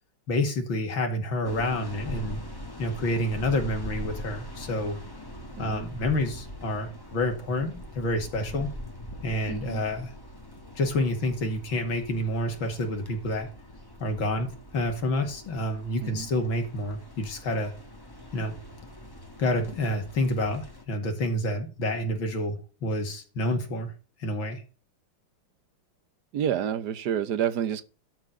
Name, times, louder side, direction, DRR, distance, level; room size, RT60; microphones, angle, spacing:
voice 1, 0.3-2.4 2.8-5.0 5.6-8.7 9.2-10.1 10.8-13.5 14.0-17.7 18.3-18.5 19.4-23.9 24.2-24.6, left 1 dB, 65° left, 3.0 m, -28 dB
sound 1, 1.4-20.8, left 1 dB, 10° left, 1.6 m, -42 dB
voice 2, 5.6-5.9 9.5-9.8 16.0-16.3 26.3-27.8, right 9 dB, 60° right, 1.3 m, -29 dB
12.0 x 4.6 x 6.5 m
omnidirectional pair, 2.4 m